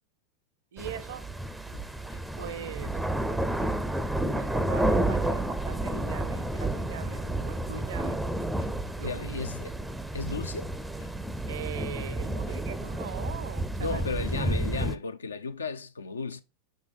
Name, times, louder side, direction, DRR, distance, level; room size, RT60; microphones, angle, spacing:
voice 1, 0.7-1.3 2.4-3.0 4.2-8.3 9.0-9.5 11.5-14.0 14.4-14.5, right 9 dB, 60° right, 0.6 m, -41 dB
sound 1, 0.8-4.0 4.3-5.2 5.4-5.5 5.8-11.1 11.4-11.5 11.7-14.4, left 4 dB, 55° left, 1.3 m, -52 dB
sound 2, 0.8-15.0, right 1 dB, 5° right, 0.5 m, -31 dB
voice 2, 9.0-9.7 10.1-10.7 13.8-16.4, left 4 dB, 75° left, 0.5 m, -34 dB
5.4 x 4.8 x 3.7 m
figure-of-eight pair, 90°, 0 cm